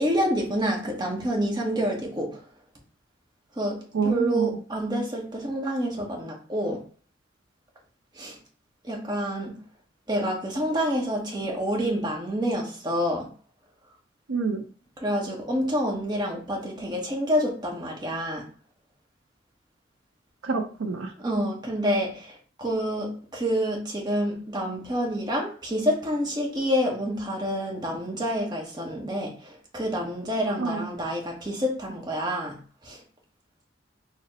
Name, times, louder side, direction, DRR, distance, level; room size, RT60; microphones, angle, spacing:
voice 1, 0.0-2.4 3.6-6.8 8.2-8.4 8.8-9.5 10.1-13.3 15.0-18.5 21.2-32.6 32.8-33.0, equal, 20° right, 0.8 m, -28 dB
voice 2, 3.9-4.6 14.3-14.6 20.4-21.1 30.6-30.8, right 4 dB, 85° right, 0.5 m, -27 dB
4.0 x 2.0 x 3.9 m
head